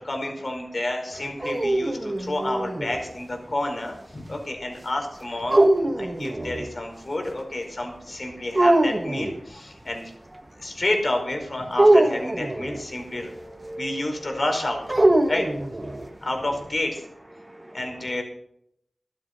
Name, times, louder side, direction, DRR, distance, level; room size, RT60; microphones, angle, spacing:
voice 1, 0.0-5.7 5.9-10.1 10.6-13.3 13.8-15.0 15.3-15.5 16.2-17.0 17.7-18.2, left 1 dB, 55° left, 3 dB, 5.0 m, -29 dB
sound 1, 1.2-3.0 5.5-6.7 8.5-9.3 11.8-12.8 14.9-16.1, right 1 dB, 35° right, 1.3 m, -21 dB
voice 2, 13.1-14.4 15.2-15.3 15.9-16.3 17.4-18.2, right 1 dB, 15° right, 9 dB, 0.8 m, -41 dB
14.5 x 12.0 x 5.4 m, 0.74 s
wide cardioid pair, 50°, 0 cm